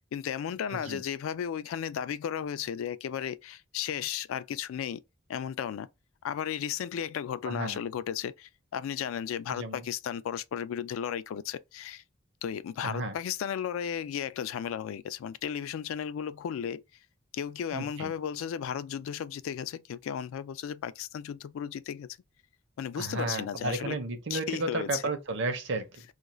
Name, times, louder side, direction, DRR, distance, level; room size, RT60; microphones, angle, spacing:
voice 1, 0.0-5.0 5.3-5.9 6.2-12.0 12.4-16.8 17.3-22.1 22.8-24.0 24.3-25.0, left 8 dB, 85° left, 0.3 m, -34 dB
voice 2, 7.4-7.8 9.5-9.8 12.8-13.1 17.7-18.1 23.0-26.0, right 2 dB, 60° right, 0.7 m, -33 dB
2.4 x 2.3 x 2.9 m
head